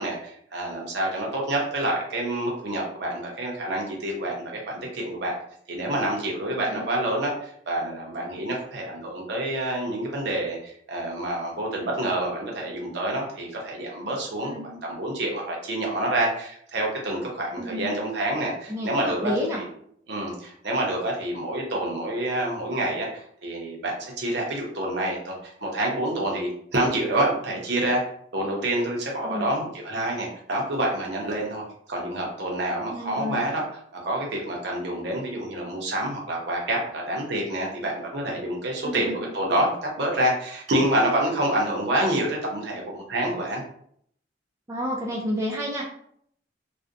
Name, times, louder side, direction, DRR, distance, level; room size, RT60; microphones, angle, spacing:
voice 1, 0.0-5.3 5.7-14.5 14.8-19.7 20.1-28.0 28.3-33.6 33.9-43.6, right 1 dB, 65° right, -1 dB, 0.7 m, -27 dB
voice 2, 17.6-17.9 18.7-19.6 29.2-29.5 32.9-33.4 38.8-39.2 44.7-45.8, equal, 15° right, -3 dB, 0.3 m, -30 dB
2.4 x 2.1 x 2.6 m, 0.67 s
head